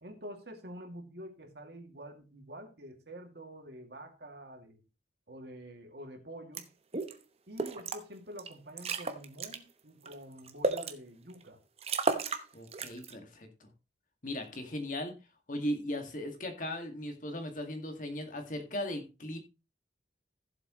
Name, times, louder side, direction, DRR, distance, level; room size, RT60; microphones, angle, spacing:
voice 1, 0.0-4.8 5.3-6.7 7.5-11.6, right 1 dB, 65° right, 3 dB, 2.5 m, -47 dB
sound 1, 6.5-6.6 6.9-7.1 7.6-8.0 8.4-8.5 8.8-9.6 10.1-10.9 11.4-11.5 11.8-12.4 12.7-13.1, right 3 dB, 35° right, 1.0 m, -32 dB
voice 2, 12.5-13.7 14.2-15.1 15.5-19.4, left 1 dB, 45° left, 5 dB, 2.0 m, -37 dB
15.0 x 7.6 x 3.1 m, 0.30 s
head